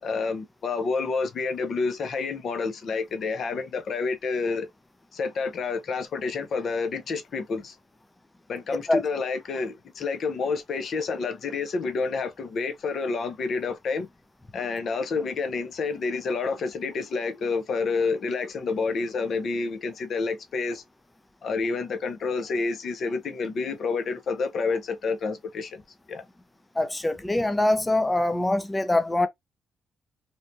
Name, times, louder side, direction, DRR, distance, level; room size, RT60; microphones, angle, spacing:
voice 1, 0.0-4.7 5.1-7.8 8.5-14.1 14.5-20.8 21.4-25.8 26.1-26.2, left 4 dB, 55° left, 0.6 m, -29 dB
voice 2, 26.7-29.3, left 2 dB, 15° left, 0.4 m, -23 dB
2.7 x 2.2 x 2.4 m
cardioid pair, 90°, 0 cm